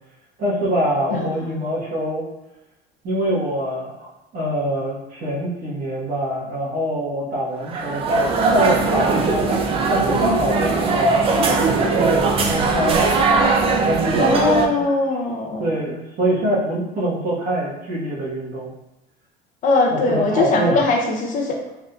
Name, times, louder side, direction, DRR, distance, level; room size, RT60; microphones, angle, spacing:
voice 1, 0.4-2.2 3.0-9.6 9.9-13.1 13.8-14.9 15.6-18.7 19.9-20.8, right 1 dB, 45° right, -6 dB, 1.2 m, -24 dB
voice 2, 1.1-1.6 14.2-15.7 19.6-21.6, left 3 dB, 40° left, 1 dB, 0.5 m, -21 dB
sound 1, 7.6-14.7, right 3 dB, 30° right, 0.3 m, -19 dB
3.5 x 2.6 x 2.2 m, 0.95 s
cardioid pair, 150°, 20 cm